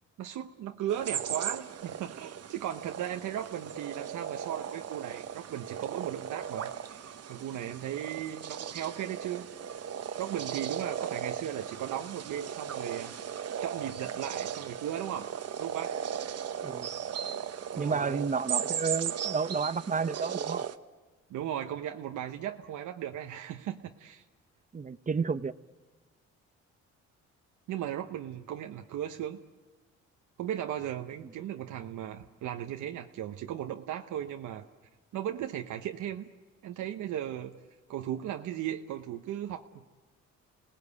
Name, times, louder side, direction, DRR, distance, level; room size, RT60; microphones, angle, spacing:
voice 1, 0.2-9.5 10.2-13.1 13.6-15.3 15.6-15.9 17.7-18.2 21.3-24.2 27.7-29.4 30.4-34.7 35.1-36.3 36.6-37.5 37.9-39.9, right 11 dB, 80° right, 4 dB, 1.1 m, -37 dB
sound 1, 0.9-20.8, right 8 dB, 55° right, 1.1 m, -37 dB
voice 2, 17.8-20.6 24.7-25.5, right 5 dB, 25° right, 13 dB, 0.7 m, -31 dB
30.0 x 19.0 x 8.4 m, 1.4 s
cardioid pair, 90°, 30 cm